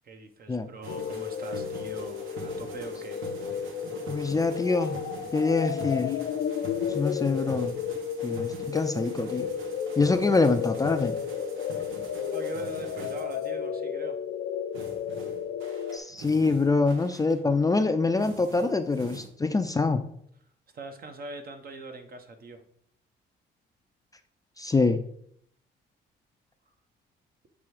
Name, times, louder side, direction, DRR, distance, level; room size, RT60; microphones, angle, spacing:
voice 1, 0.0-3.2 12.3-14.2 20.7-22.6, right 3 dB, 50° right, 6 dB, 1.0 m, -42 dB
sound 1, 0.8-13.5 14.7-19.3, right 3 dB, 90° right, 1.0 m, -44 dB
sound 2, 0.9-16.0, left 8 dB, 85° left, 0.6 m, -33 dB
voice 2, 4.1-5.0 5.3-6.1 6.9-7.8 8.2-9.5 10.0-11.1 15.9-20.0 24.6-25.0, left 3 dB, 20° left, 7 dB, 0.4 m, -25 dB
7.2 x 3.4 x 4.8 m, 0.68 s
cardioid pair, 90°, 20 cm